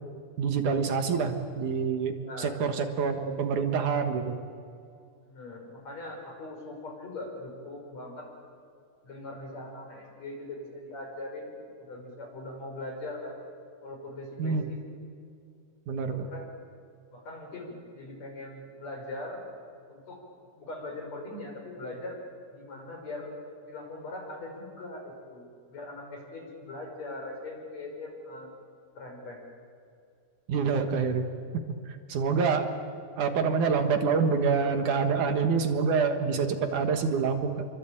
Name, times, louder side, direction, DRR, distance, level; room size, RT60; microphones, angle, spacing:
voice 1, 0.4-4.4 14.4-14.7 15.9-16.3 30.5-31.3 31.9-32.7 33.2-37.7, right 5 dB, 65° right, 6 dB, 2.9 m, -26 dB
voice 2, 2.2-2.6 5.2-8.3 9.0-13.4 13.8-14.8 16.1-16.5 17.1-19.5 19.9-20.2 20.6-22.2 22.5-23.3 23.6-28.5 28.9-29.4, left 2 dB, 50° left, 2 dB, 6.6 m, -41 dB
28.5 x 23.5 x 8.8 m, 2.4 s
omnidirectional pair, 3.9 m